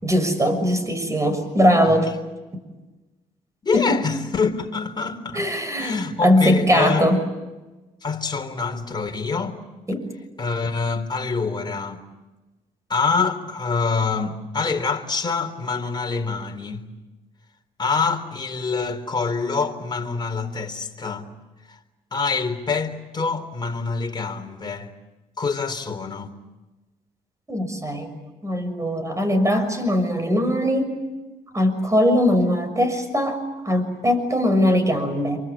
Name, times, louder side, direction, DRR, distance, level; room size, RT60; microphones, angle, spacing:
voice 1, 0.0-2.1 3.7-4.0 5.3-7.2 9.9-10.0 27.5-28.1 28.4-30.9 31.5-33.4 33.6-35.4, equal, 20° right, 6.4 m, -20 dB
voice 2, 3.6-5.5 5.8-7.1 8.0-9.6 10.4-12.1 12.9-16.9 17.8-21.3 21.7-21.8 22.1-24.9 25.4-26.3, left 4 dB, 30° left, 3.7 m, -25 dB
27.5 x 24.0 x 8.8 m
cardioid pair, 80°, 15 cm